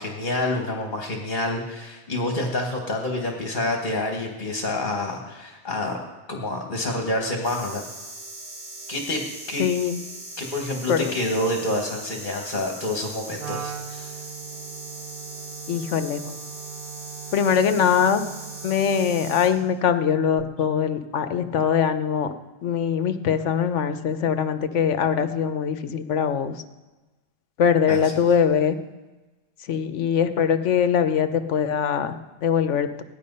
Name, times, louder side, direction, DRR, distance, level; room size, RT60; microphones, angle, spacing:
voice 1, 0.0-6.0 6.3-7.8 8.9-9.2 9.5-9.6 10.4-14.1 27.9-28.1, left 1 dB, 45° left, 1 dB, 1.5 m, -28 dB
sound 1, 7.4-19.5, right 1 dB, 85° right, 3.8 m, -40 dB
voice 2, 9.6-10.0 10.9-11.1 15.7-16.2 17.3-18.2 18.6-22.3 22.6-26.5 27.6-28.7 29.7-33.0, left 7 dB, 90° left, 10 dB, 1.2 m, -22 dB
Wind instrument woodwind instrument, 13.4-19.7, right 9 dB, 55° right, 0.8 m, -40 dB
16.5 x 10.5 x 5.4 m, 1.2 s
omnidirectional pair, 1.2 m